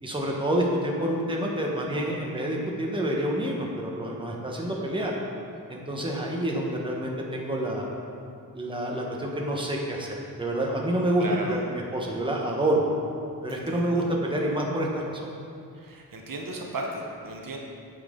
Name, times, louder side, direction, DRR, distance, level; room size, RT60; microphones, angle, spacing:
voice 1, 0.0-5.1 5.7-7.9 8.5-12.8 13.4-15.3, right 1 dB, 15° right, -2 dB, 1.1 m, -28 dB
voice 2, 11.2-11.6 13.5-14.0 15.8-17.6, right 2 dB, 65° right, 1 dB, 1.0 m, -35 dB
9.0 x 7.3 x 3.7 m, 2.3 s
wide cardioid pair, 120°, 36 cm